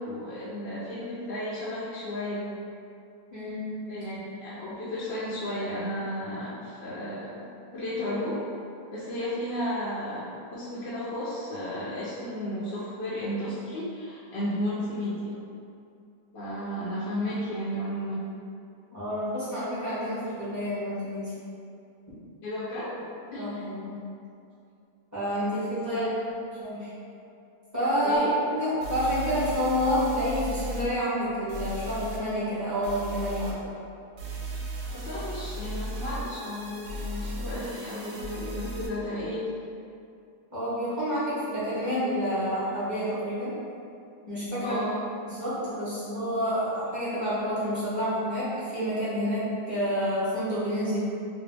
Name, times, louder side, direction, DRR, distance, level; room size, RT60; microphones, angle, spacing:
voice 1, 0.0-2.5 3.9-7.4 7.7-8.4 8.9-15.3 16.3-18.2 22.4-23.0 23.3-23.7 25.8-26.3 28.0-28.3 34.9-39.4 44.6-45.0, left 1 dB, 55° left, -9 dB, 0.9 m, -33 dB
voice 2, 3.3-4.0 18.9-21.3 23.3-23.9 25.1-25.9 26.6-26.9 27.7-33.5 40.5-43.5 44.3-44.8 45.2-48.5 48.7-51.0, equal, 10° right, -12 dB, 1.2 m, -29 dB
sound 1, 28.1-28.2 28.8-30.9 31.5-32.2 32.8-33.5 34.2-38.9, right 1 dB, 70° right, 0.9 m, -36 dB
3.1 x 2.9 x 3.3 m, 2.6 s
omnidirectional pair, 1.5 m